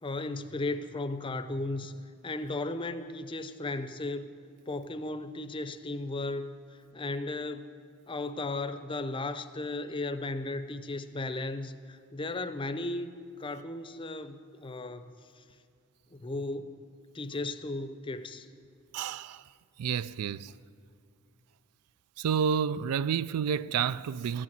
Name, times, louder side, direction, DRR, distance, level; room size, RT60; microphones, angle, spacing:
voice 1, 0.0-4.3 4.7-6.5 6.9-7.7 8.1-13.1 13.4-15.1 15.4-15.5 16.1-16.9 17.1-18.5, left 2 dB, 25° left, 0.5 m, -35 dB
voice 2, 18.9-19.4 19.8-20.5 22.2-24.4, right 7 dB, 85° right, 0.4 m, -30 dB
14.0 x 8.6 x 9.2 m
head